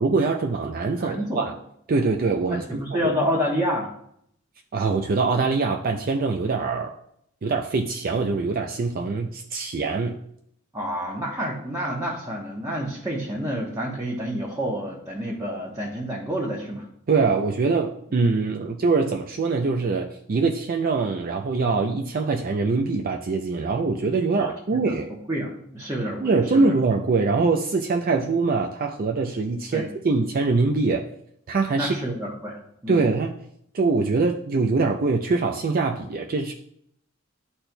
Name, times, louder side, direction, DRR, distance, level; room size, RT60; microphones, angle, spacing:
voice 1, 0.0-1.5 1.9-2.6 4.7-6.9 7.4-10.2 17.1-25.1 26.2-31.1 31.5-31.9 32.9-33.4 33.7-36.5, right 4 dB, 45° right, 2 dB, 0.4 m, -23 dB
voice 2, 0.9-1.4 2.5-3.9 10.7-16.8 24.3-26.8 29.7-29.9 31.8-33.0, equal, 15° right, -5 dB, 1.0 m, -29 dB
12.0 x 4.3 x 2.2 m, 0.70 s
head